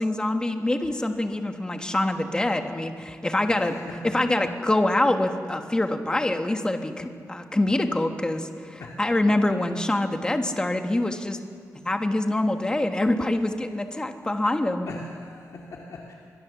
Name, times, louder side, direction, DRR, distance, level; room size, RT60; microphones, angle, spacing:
voice 1, 0.0-3.8 4.0-11.4 11.8-15.0, left 1 dB, 15° left, 6 dB, 1.3 m, -25 dB
voice 2, 3.5-4.2 8.8-9.3 14.9-16.1, left 2 dB, 60° left, -2 dB, 2.3 m, -41 dB
24.5 x 22.0 x 7.1 m, 2.2 s
wide cardioid pair, 175°, 6 cm